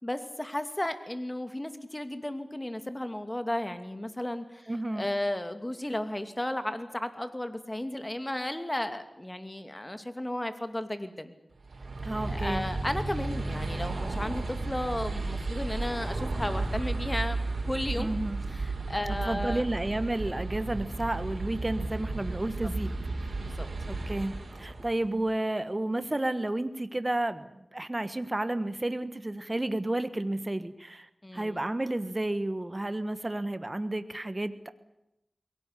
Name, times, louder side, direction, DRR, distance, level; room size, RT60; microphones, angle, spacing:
voice 1, 0.0-11.3 12.3-18.1 18.5-19.6 23.4-23.7 31.2-31.6, left 1 dB, 25° left, 9 dB, 2.6 m, -34 dB
voice 2, 4.7-5.0 12.0-12.6 18.0-18.4 19.3-23.0 23.9-27.5 27.7-34.7, right 1 dB, 30° right, 12 dB, 1.2 m, -31 dB
sound 1, 11.6-25.1, right 3 dB, 85° right, 4.5 m, -33 dB
22.0 x 18.0 x 9.9 m, 0.87 s
cardioid pair, 45°, 0 cm